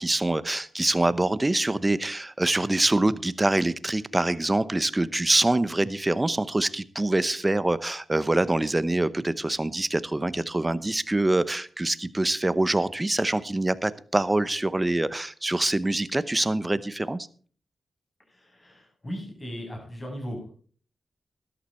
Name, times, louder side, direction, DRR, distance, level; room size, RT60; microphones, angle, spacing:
voice 1, 0.0-17.3, right 2 dB, 20° right, 16 dB, 0.8 m, -25 dB
voice 2, 18.3-20.6, equal, 30° left, 1 dB, 7.4 m, -37 dB
13.0 x 11.5 x 4.4 m, 0.43 s
cardioid pair, 60°, 0 cm